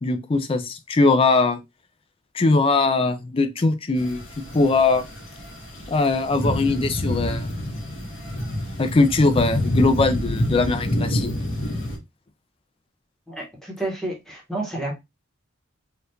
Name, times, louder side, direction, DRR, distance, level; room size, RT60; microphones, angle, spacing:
voice 1, 0.0-1.6 2.3-4.2 4.5-5.0 5.9-7.5 8.8-11.3, left 3 dB, 30° left, 0.4 m, -20 dB
sound 1, 4.0-12.0, left 1 dB, 90° left, 1.5 m, -27 dB
voice 2, 13.3-14.9, right 2 dB, ahead, 1.1 m, -30 dB
3.4 x 2.4 x 2.7 m
head